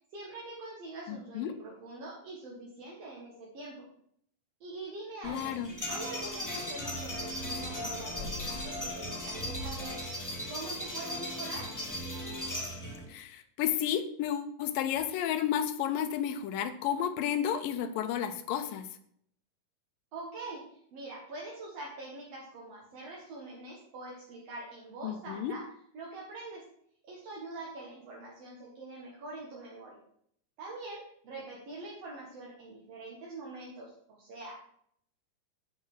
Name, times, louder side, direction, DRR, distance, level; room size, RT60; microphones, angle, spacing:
voice 1, 0.1-3.9 4.6-5.5 5.9-11.7 20.1-25.6 25.9-26.6 27.0-30.0 30.6-34.5, right 2 dB, 55° right, -4 dB, 2.4 m, -44 dB
voice 2, 1.1-1.5 5.2-5.7 13.1-18.9 25.0-25.5, left 9 dB, 85° left, 10 dB, 2.5 m, -32 dB
sound 1, 5.2-13.0, left 1 dB, 10° left, 0.9 m, -37 dB
8.3 x 5.7 x 6.2 m, 0.67 s
omnidirectional pair, 3.9 m